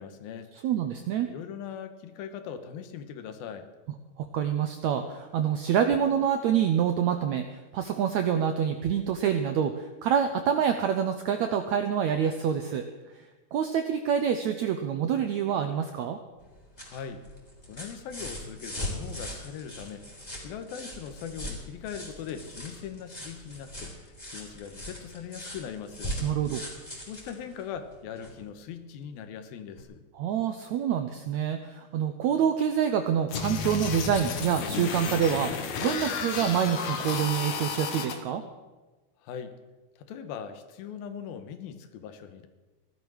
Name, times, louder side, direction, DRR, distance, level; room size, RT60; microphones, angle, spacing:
voice 1, 0.0-0.5 1.3-3.7 16.8-17.2 17.7-20.1 20.4-26.2 27.1-30.0 39.2-39.5 40.0-42.5, left 7 dB, 80° left, 9 dB, 2.9 m, -40 dB
voice 2, 0.6-1.3 4.2-12.8 13.5-16.2 26.2-26.6 30.1-38.4, right 8 dB, 85° right, 7 dB, 1.6 m, -27 dB
sound 1, 16.4-28.4 29.8-29.9, left 1 dB, 10° left, 3.3 m, -40 dB
sound 2, 33.3-38.1, left 6 dB, 60° left, 2.3 m, -32 dB
16.0 x 12.0 x 6.3 m, 1.2 s
omnidirectional pair, 4.3 m